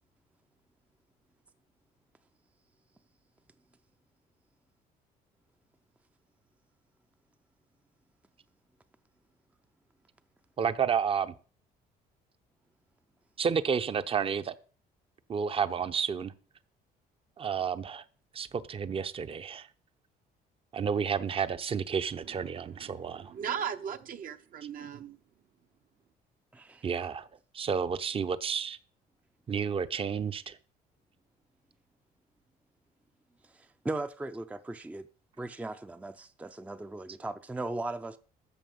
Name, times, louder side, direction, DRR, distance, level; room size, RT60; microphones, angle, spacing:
voice 1, 10.6-11.3 13.4-14.5 15.3-16.3 17.4-18.0 18.3-19.7 20.7-23.3 26.8-27.3 27.5-28.8 29.5-30.6, right 6 dB, 35° right, 0.8 m, -31 dB
voice 2, 22.1-25.2, right 8 dB, 55° right, 1.0 m, -38 dB
voice 3, 26.5-26.8 33.5-35.1 35.4-38.2, right 2 dB, 10° right, 0.5 m, -38 dB
13.5 x 7.2 x 5.3 m
cardioid pair, 110°, 17 cm